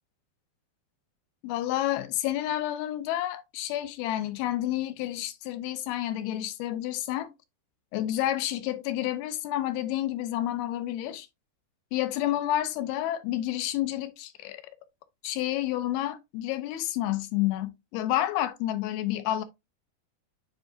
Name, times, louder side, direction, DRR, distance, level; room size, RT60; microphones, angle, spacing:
voice 1, 1.4-7.3 7.9-11.3 11.9-14.6 15.2-19.4, left 13 dB, 85° left, 2.6 m, -29 dB
9.6 x 3.9 x 2.5 m
omnidirectional pair, 4.5 m